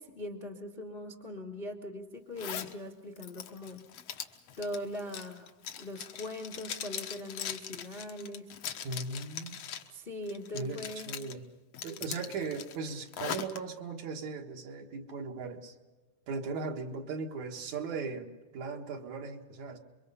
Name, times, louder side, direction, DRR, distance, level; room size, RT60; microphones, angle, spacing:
voice 1, 0.0-3.9 4.6-5.5 5.8-8.5 9.9-11.1, left 1 dB, 30° left, 4 dB, 0.9 m, -41 dB
Zipper (clothing), 2.4-2.7 3.2-9.9 10.3-11.3 11.7-13.6, left 9 dB, 65° left, 1.9 m, -41 dB
voice 2, 8.8-9.6 10.5-11.4 11.8-15.7 16.3-19.8, right 4 dB, 65° right, 3 dB, 2.8 m, -38 dB
27.5 x 23.5 x 5.6 m, 1.3 s
omnidirectional pair, 3.6 m